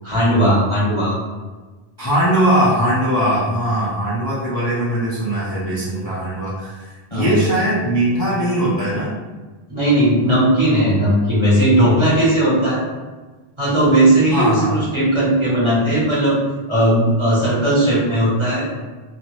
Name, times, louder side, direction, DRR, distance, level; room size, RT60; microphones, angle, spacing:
voice 1, 0.0-1.2 7.1-7.4 9.7-12.8 13.6-16.4 16.7-18.6, right 1 dB, 30° right, -9 dB, 1.2 m, -17 dB
voice 2, 2.0-9.1 14.3-14.8, right 1 dB, 25° left, -9 dB, 0.5 m, -20 dB
2.7 x 2.4 x 3.1 m, 1.3 s
omnidirectional pair, 1.0 m